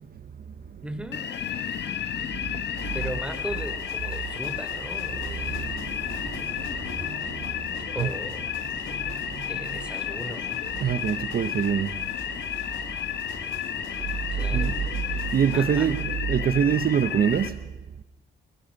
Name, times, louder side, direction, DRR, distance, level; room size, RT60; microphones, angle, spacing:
voice 1, 0.8-1.3 2.9-5.8 7.8-8.4 9.5-10.5 14.3-14.7 15.5-15.9, right 1 dB, 5° right, 3.2 m, -37 dB
sound 1, 1.1-17.5, left 9 dB, 60° left, 1.5 m, -32 dB
sound 2, 2.7-16.0, left 4 dB, 85° left, 6.4 m, -43 dB
voice 2, 5.5-7.5 8.0-8.1 8.9-9.9 10.8-12.0 14.5-14.9 15.3-17.7, right 8 dB, 50° right, 0.9 m, -26 dB
27.5 x 21.0 x 5.4 m
cardioid pair, 90°, 20 cm